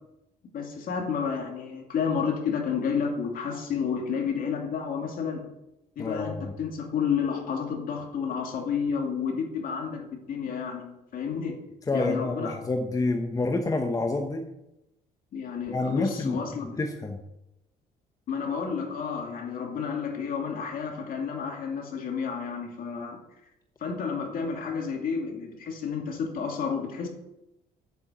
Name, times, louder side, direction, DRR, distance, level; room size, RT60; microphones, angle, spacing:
voice 1, 0.5-5.4 6.0-11.6 11.9-12.5 15.3-16.6 18.3-23.2 23.8-27.1, left 6 dB, 55° left, 2 dB, 2.6 m, -30 dB
voice 2, 6.0-6.5 11.9-14.5 15.7-17.2, left 2 dB, 20° left, 4 dB, 1.0 m, -28 dB
9.0 x 8.0 x 6.8 m, 0.90 s
cardioid pair, 110°, 17 cm